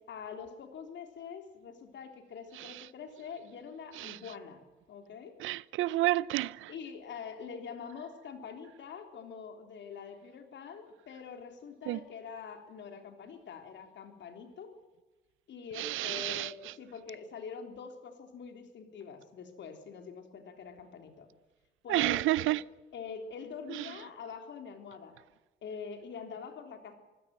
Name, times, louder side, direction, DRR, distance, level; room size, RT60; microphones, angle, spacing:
voice 1, 0.1-4.6 4.9-5.4 6.7-14.7 15.5-21.3 21.8-22.5 22.9-25.2 25.6-26.9, left 6 dB, 65° left, 3.6 m, -45 dB
voice 2, 5.4-6.7 11.9-12.0 15.8-16.7 21.9-22.6 23.7-23.9, right 17 dB, 85° right, 0.6 m, -30 dB
24.5 x 16.0 x 7.8 m
cardioid pair, 90°, 20 cm